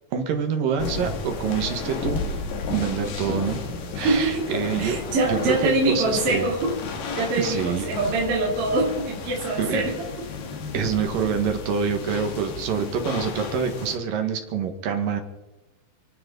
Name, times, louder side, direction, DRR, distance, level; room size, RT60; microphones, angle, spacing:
voice 1, 0.1-2.2 2.7-3.6 4.0-5.0 5.2-6.5 7.4-7.9 9.6-9.8 10.7-15.2, right 6 dB, 75° right, 5 dB, 3.3 m, -26 dB
sound 1, 0.8-14.0, left 4 dB, 75° left, 3.3 m, -33 dB
voice 2, 3.9-4.5 4.8-6.8 7.1-10.3, right 2 dB, 45° right, -2 dB, 3.1 m, -24 dB
28.5 x 9.6 x 4.0 m, 1.1 s
omnidirectional pair, 4.0 m